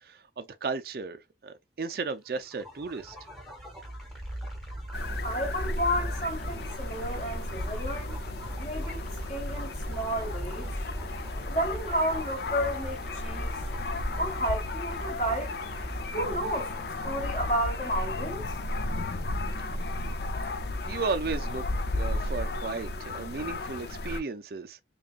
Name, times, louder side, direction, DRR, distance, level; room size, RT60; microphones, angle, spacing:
voice 1, 0.0-3.2 20.9-21.6 21.9-24.8, right 4 dB, 55° right, 0.4 m, -34 dB
sound 1, 2.4-18.0, equal, ahead, 1.1 m, -39 dB
sound 2, 4.9-24.2, left 2 dB, 60° left, 0.5 m, -34 dB
voice 2, 5.2-8.2 8.6-10.7 11.5-13.6 14.2-15.6 16.1-16.7 17.0-18.4, equal, 35° left, 1.9 m, -31 dB
5.0 x 2.3 x 2.4 m
head